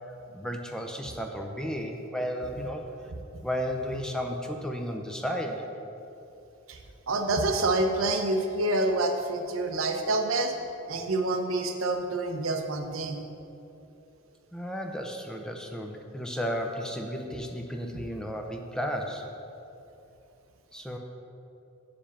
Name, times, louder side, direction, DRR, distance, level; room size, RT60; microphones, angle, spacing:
voice 1, 0.1-2.9 3.4-5.7 14.5-19.3 20.7-21.0, equal, 5° left, 3 dB, 0.5 m, -33 dB
voice 2, 7.1-10.5 10.9-13.2, right 2 dB, 70° right, 4 dB, 0.8 m, -27 dB
7.0 x 5.1 x 7.1 m, 2.8 s
head